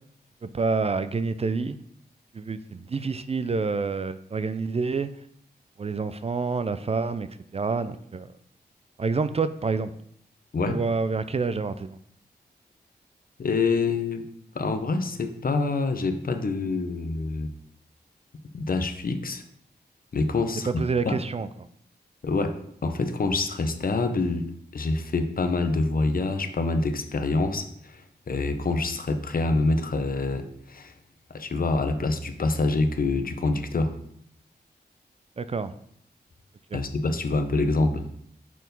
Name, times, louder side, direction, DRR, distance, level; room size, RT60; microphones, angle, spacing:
voice 1, 0.4-1.8 2.3-5.1 5.8-8.3 9.0-9.9 10.7-12.0 20.7-21.5 35.4-35.7 36.7-36.8, right 4 dB, 35° right, 12 dB, 0.4 m, -28 dB
voice 2, 13.4-14.3 14.5-17.5 18.5-19.4 20.1-21.2 22.2-22.5 22.8-24.5 24.7-28.0 28.3-30.9 31.3-33.9 36.7-38.0, left 3 dB, 55° left, 8 dB, 0.8 m, -26 dB
6.1 x 4.6 x 5.3 m, 0.68 s
wide cardioid pair, 75°, 17 cm